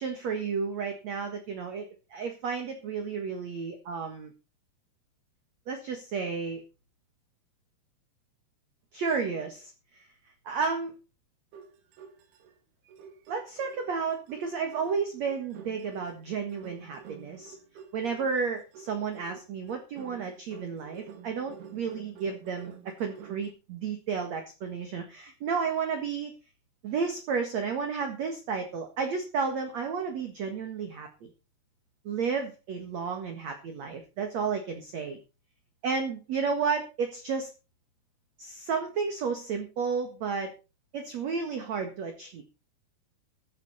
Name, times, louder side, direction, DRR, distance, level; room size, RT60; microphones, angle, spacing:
voice 1, 0.0-4.3 5.7-6.6 8.9-10.1 10.5-11.0 13.3-17.5 17.9-26.3 26.8-31.3 32.0-35.2 35.8-37.5 38.4-40.5 40.9-42.4, right 5 dB, 50° right, 5 dB, 2.5 m, -32 dB
sound 1, 11.5-12.5 12.9-23.5, right 7 dB, 70° right, 3.8 m, -49 dB
15.0 x 11.5 x 4.3 m, 0.31 s
omnidirectional pair, 4.8 m